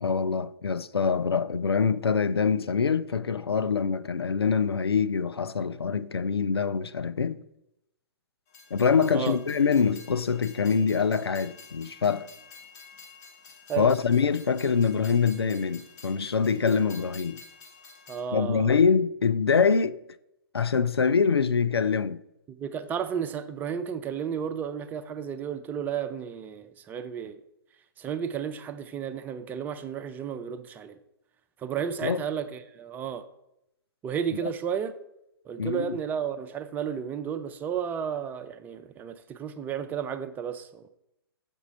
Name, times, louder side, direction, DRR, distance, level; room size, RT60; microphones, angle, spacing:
voice 1, 0.0-7.4 8.7-12.3 13.8-17.4 18.3-20.0 20.5-22.2 32.0-32.2 34.4-34.5 35.6-36.0, left 6 dB, 80° left, 0.4 m, -24 dB
Train, 8.5-18.2, left 5 dB, 45° left, 1.3 m, -50 dB
voice 2, 18.1-18.8 22.6-27.4 28.0-31.0 31.6-33.2 34.0-34.9 35.5-40.8, right 8 dB, 15° right, 0.3 m, -33 dB
6.9 x 5.3 x 5.2 m
figure-of-eight pair, 120°, 13 cm